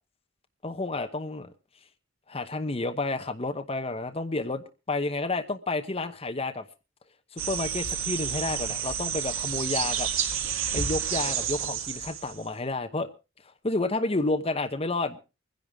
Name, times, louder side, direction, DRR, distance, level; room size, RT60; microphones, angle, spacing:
voice 1, 0.6-1.5 2.3-6.6 7.3-10.1 10.7-13.1 13.6-15.2, left 2 dB, 30° left, 0.9 m, -30 dB
sound 1, 7.4-12.5, right 8 dB, 80° right, 1.9 m, -30 dB
24.5 x 10.5 x 3.5 m
head